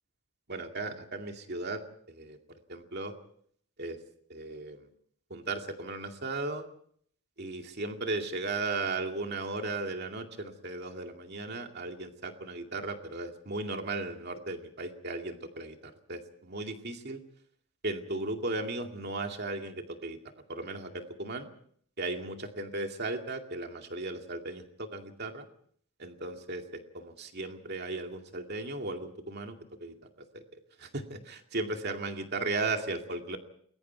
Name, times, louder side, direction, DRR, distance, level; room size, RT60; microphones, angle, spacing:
voice 1, 0.5-1.8 2.1-2.4 2.7-3.1 3.8-4.0 4.3-4.9 5.3-6.6 7.4-17.2 17.8-20.2 20.5-21.5 22.0-25.4 26.0-29.9 30.3-30.4 30.8-33.4, right 2 dB, 50° right, 4 dB, 2.3 m, -36 dB
29.5 x 21.5 x 4.6 m, 0.62 s
head